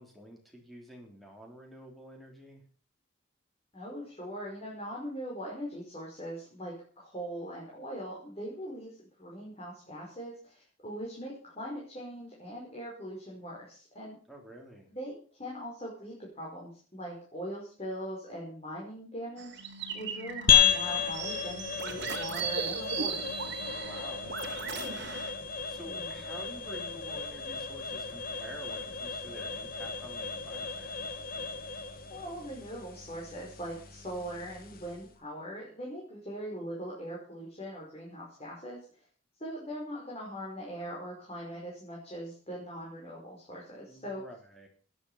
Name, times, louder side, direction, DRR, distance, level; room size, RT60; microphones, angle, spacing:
voice 1, 0.0-2.6 14.3-14.9 23.8-25.2 25.7-31.0 43.9-44.7, equal, ahead, 0 dB, 3.7 m, -49 dB
voice 2, 3.7-14.2 14.9-19.5 19.9-23.2 25.8-26.2 32.1-38.8 39.4-44.2, equal, 30° left, -5 dB, 5.5 m, -41 dB
sound 1, 19.4-25.3, right 5 dB, 60° right, 2.5 m, -38 dB
sound 2, 20.5-35.1, left 7 dB, 50° left, 1.6 m, -33 dB
17.5 x 10.0 x 5.7 m, 0.42 s
head